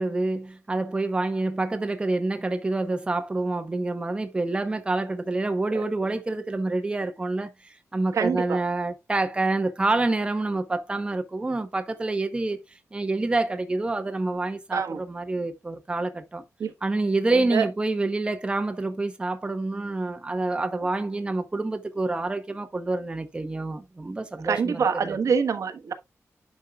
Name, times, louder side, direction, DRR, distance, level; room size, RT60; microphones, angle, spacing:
voice 1, 0.0-12.6 12.9-16.4 16.8-25.2, right 2 dB, 20° right, 0.9 m, -27 dB
voice 2, 8.1-8.6 14.7-15.0 16.6-16.7 17.3-17.7 24.4-25.9, right 6 dB, 70° right, 1.2 m, -25 dB
11.0 x 5.4 x 2.3 m
wide cardioid pair, 170°, 6 cm